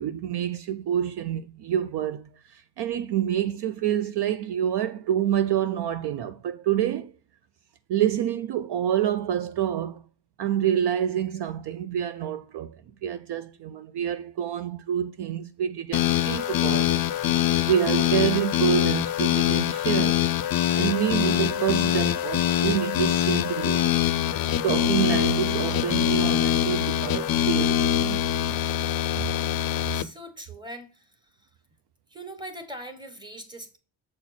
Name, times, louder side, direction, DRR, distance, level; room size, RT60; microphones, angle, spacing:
voice 1, 0.0-7.1 7.9-10.0 10.4-17.0 17.6-20.2 20.8-23.9 24.6-28.2 29.2-29.3, right 10 dB, 60° right, 0.5 m, -27 dB
sound 1, 15.9-30.0, left 11 dB, 50° left, 0.5 m, -24 dB
voice 2, 29.9-31.3 32.1-33.8, right 1 dB, 10° right, 1.2 m, -41 dB
7.4 x 4.4 x 4.2 m
cardioid pair, 150°, 46 cm